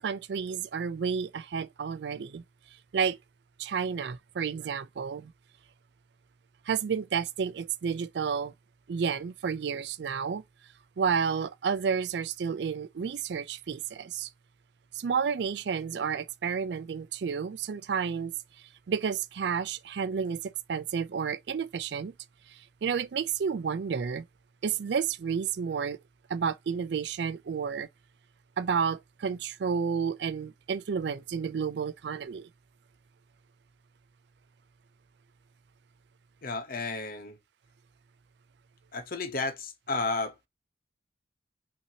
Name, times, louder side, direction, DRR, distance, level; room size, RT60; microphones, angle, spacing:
voice 1, 0.0-2.4 2.9-3.2 3.6-5.3 6.7-8.5 8.9-10.4 11.0-14.3 14.9-18.3 18.9-22.1 22.8-24.2 24.6-26.0 26.3-27.9 28.6-32.5, right 6 dB, 65° right, 0.4 m, -31 dB
voice 2, 36.4-37.4 38.9-40.4, left 3 dB, 50° left, 0.9 m, -32 dB
5.8 x 2.8 x 2.8 m
head